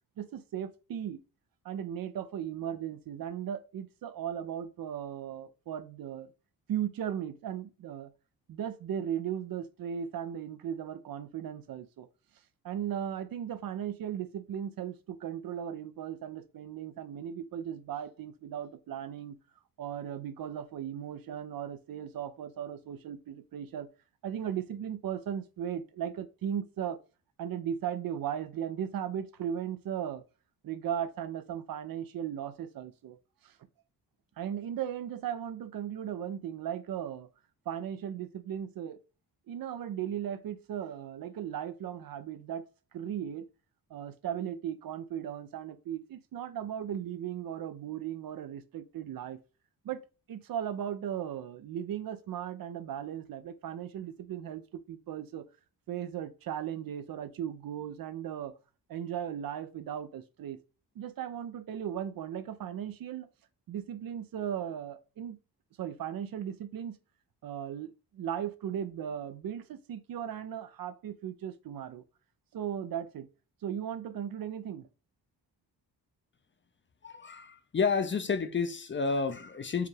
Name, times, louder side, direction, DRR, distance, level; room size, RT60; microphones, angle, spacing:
voice 1, 0.2-1.2 1.6-6.3 6.7-8.1 8.5-12.1 12.6-19.4 19.8-23.9 24.2-27.0 27.4-30.2 30.6-33.6 34.4-37.3 37.7-39.0 39.5-42.6 42.9-43.5 43.9-49.4 49.8-50.0 50.3-55.4 55.9-58.5 58.9-60.6 61.0-63.3 63.7-65.4 65.8-67.0 67.4-72.0 72.5-73.3 73.6-74.9, right 9 dB, 60° right, 0.5 m, -37 dB
voice 2, 77.0-79.9, left 5 dB, 30° left, 0.5 m, -30 dB
4.7 x 2.3 x 3.2 m
cardioid pair, 100°, 39 cm